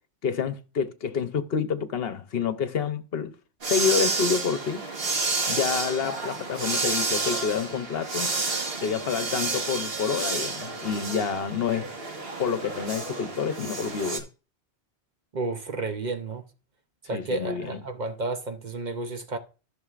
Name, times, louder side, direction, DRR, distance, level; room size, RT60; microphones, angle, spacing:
voice 1, 0.2-3.3 3.7-4.8 5.5-8.3 8.8-11.9 12.4-14.3 17.1-17.8, left 6 dB, 65° left, 0.9 m, -28 dB
sound 1, 3.6-14.2, right 3 dB, 65° right, 1.6 m, -30 dB
voice 2, 15.3-16.4 17.1-19.4, right 3 dB, 45° right, 0.8 m, -31 dB
14.0 x 6.1 x 2.4 m
omnidirectional pair, 1.1 m